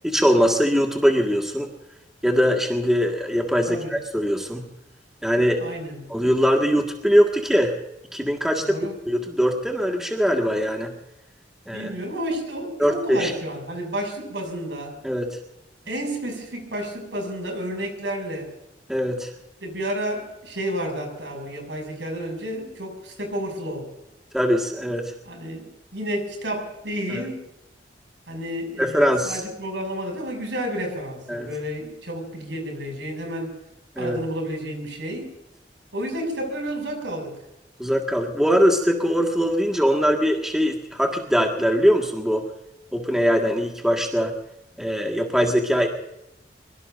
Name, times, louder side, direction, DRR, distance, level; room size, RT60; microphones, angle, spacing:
voice 1, 0.0-1.7 2.2-4.7 5.2-5.6 6.1-7.7 8.1-8.7 9.1-10.9 11.7-11.9 12.8-13.3 15.0-15.4 18.9-19.3 24.3-25.1 27.1-27.3 28.8-29.4 31.3-31.5 34.0-34.2 37.8-42.5 42.9-44.3 44.8-45.9, equal, 5° right, 1 dB, 1.8 m, -21 dB
voice 2, 5.6-6.0 8.6-8.9 11.7-15.0 15.9-18.5 19.6-23.9 25.2-25.7 25.9-27.5 28.3-33.5 34.0-35.3 35.9-37.4, equal, 75° right, 3 dB, 6.6 m, -31 dB
24.0 x 23.0 x 2.6 m, 0.86 s
head